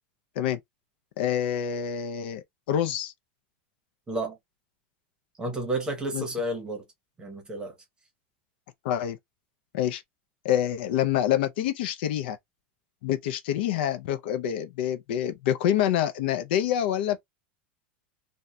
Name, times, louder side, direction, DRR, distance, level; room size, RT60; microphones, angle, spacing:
voice 1, 1.2-3.1 6.1-6.3 8.8-9.2 9.7-10.0 10.4-12.4 13.0-17.2, left 10 dB, 70° left, 0.4 m, -26 dB
voice 2, 4.1-4.4 5.4-6.8 7.2-7.7, right 1 dB, 15° right, 0.8 m, -31 dB
2.7 x 2.1 x 2.2 m
supercardioid pair, 145°, 6 cm